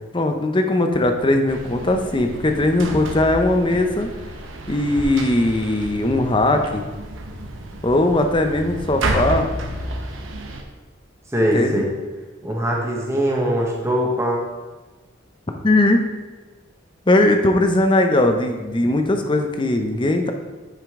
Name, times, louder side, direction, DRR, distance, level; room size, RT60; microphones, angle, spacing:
voice 1, 0.1-4.1 4.7-6.8 7.8-9.5 11.5-11.8 15.6-16.0 17.1-20.3, left 1 dB, 25° left, 5 dB, 0.6 m, -19 dB
sound 1, 1.5-10.6, right 1 dB, 85° right, 0.9 m, -30 dB
voice 2, 11.3-11.8 12.4-14.4, equal, 15° right, -2 dB, 1.0 m, -21 dB
9.2 x 5.1 x 3.6 m, 1.2 s
head